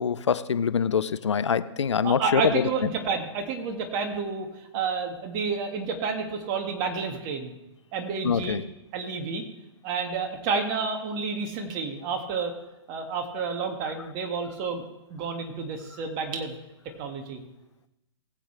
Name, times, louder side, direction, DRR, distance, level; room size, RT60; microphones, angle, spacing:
voice 1, 0.0-2.6 8.2-8.6, left 6 dB, 90° left, 15 dB, 0.6 m, -24 dB
voice 2, 2.0-4.5 4.7-7.5 7.9-8.6 8.9-9.4 9.8-12.5 12.9-14.8 15.1-16.6 17.0-17.4, right 5 dB, 35° right, 4 dB, 2.0 m, -30 dB
20.5 x 8.0 x 3.4 m, 0.96 s
hypercardioid pair, 135°, 15 cm